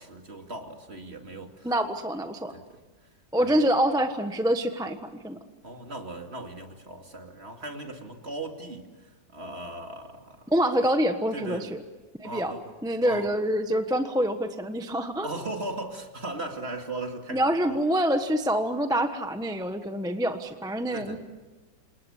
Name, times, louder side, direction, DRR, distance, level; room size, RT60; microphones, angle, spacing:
voice 1, 0.0-1.7 2.5-2.8 3.4-3.6 5.6-10.5 11.3-11.7 12.2-12.7 13.0-13.3 15.2-17.8 20.9-21.2, right 2 dB, 35° right, 4 dB, 2.5 m, -38 dB
voice 2, 1.6-2.5 3.3-5.4 10.5-11.8 12.2-12.5 12.8-15.3 17.3-21.2, right 1 dB, 5° right, 7 dB, 0.9 m, -26 dB
28.0 x 27.5 x 7.3 m, 1.2 s
omnidirectional pair, 2.1 m